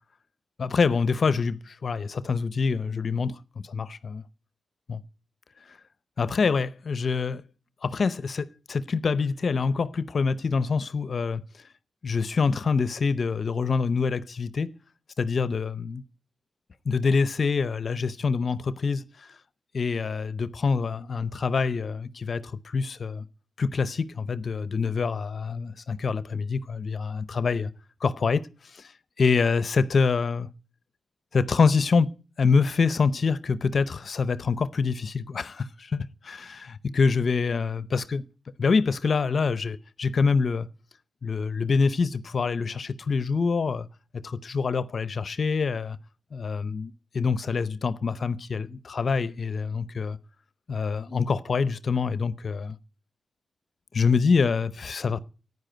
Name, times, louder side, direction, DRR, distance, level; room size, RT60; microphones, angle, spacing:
voice 1, 0.6-4.2 4.9-5.0 5.7-5.8 6.2-7.4 7.8-11.4 12.0-14.7 15.2-16.0 16.8-19.4 19.7-23.2 23.6-27.7 28.0-30.5 31.3-38.2 38.6-40.7 41.2-43.9 44.1-46.0 46.3-50.2 50.7-52.8 53.9-55.2, left 5 dB, 60° left, 0.6 m, -26 dB
9.8 x 9.6 x 7.8 m
supercardioid pair, 45°, 0 cm